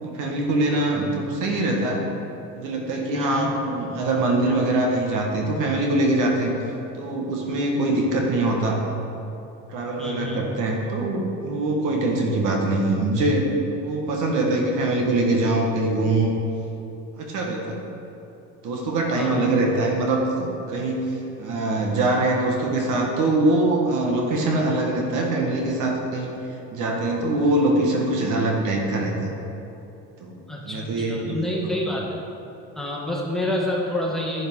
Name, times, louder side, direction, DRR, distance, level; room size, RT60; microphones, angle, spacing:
voice 1, 0.0-2.0 2.5-6.6 6.9-8.8 9.7-13.5 13.8-16.3 17.2-17.8 18.6-26.4 26.7-29.1 30.2-30.4 30.6-31.4 31.6-31.8, right 2 dB, 70° right, 0 dB, 1.6 m, -23 dB
voice 2, 3.1-3.5 10.0-10.5 19.1-19.5 30.5-32.2 32.8-34.5, left 1 dB, ahead, -4 dB, 2.1 m, -28 dB
10.5 x 8.7 x 3.7 m, 2.9 s
supercardioid pair, 85°, 32 cm